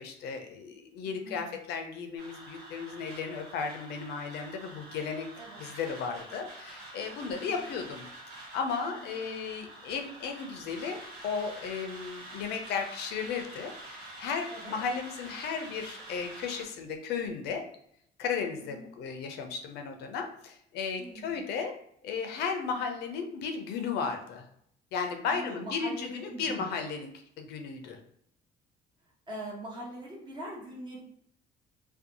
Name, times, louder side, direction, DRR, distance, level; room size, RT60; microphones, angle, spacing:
voice 1, 0.0-5.3 5.6-11.0 11.2-17.6 18.2-21.7 22.0-24.5 24.9-27.1 27.4-28.0, left 5 dB, 75° left, 5 dB, 0.5 m, -35 dB
voice 2, 1.0-1.5 5.4-5.6 7.3-7.6 8.9-9.1 14.5-14.8 18.6-18.9 21.0-21.4 25.3-26.7 29.3-31.0, right 1 dB, 25° right, -3 dB, 1.0 m, -42 dB
sound 1, 2.2-16.6, right 2 dB, 80° right, 1.2 m, -47 dB
2.6 x 2.2 x 2.6 m, 0.69 s
cardioid pair, 110°, 17 cm